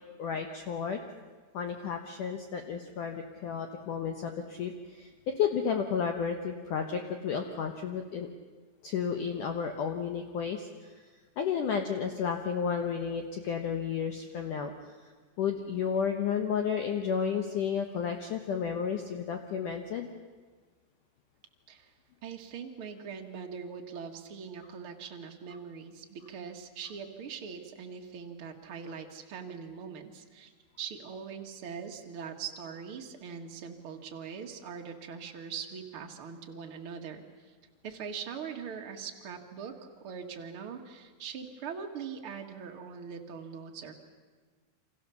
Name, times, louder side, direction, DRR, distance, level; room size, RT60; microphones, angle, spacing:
voice 1, 0.2-1.0 1.5-5.1 5.4-8.3 8.8-10.7 11.4-14.7 15.4-20.1, left 7 dB, 90° left, 5 dB, 1.7 m, -32 dB
voice 2, 22.2-30.5 30.8-37.5 37.8-39.7 40.0-43.9, right 6 dB, 65° right, 2 dB, 1.3 m, -42 dB
28.5 x 26.0 x 7.1 m, 1.5 s
omnidirectional pair, 5.5 m